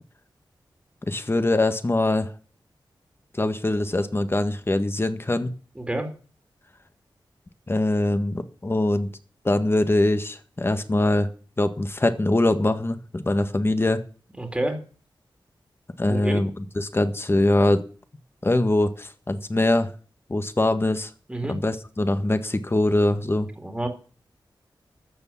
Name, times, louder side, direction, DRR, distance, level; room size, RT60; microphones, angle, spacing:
voice 1, 1.1-2.3 3.4-5.5 7.7-9.1 9.4-11.3 11.6-14.0 16.0-16.5 16.8-17.8 18.4-19.9 20.3-21.1 21.5-23.5, left 2 dB, 30° left, 10 dB, 1.7 m, -23 dB
voice 2, 5.8-6.1 14.4-14.8 16.1-16.4 21.3-21.5 23.6-23.9, right 1 dB, 10° right, 4 dB, 2.7 m, -28 dB
13.5 x 6.9 x 8.6 m, 0.39 s
cardioid pair, 65°, 8 cm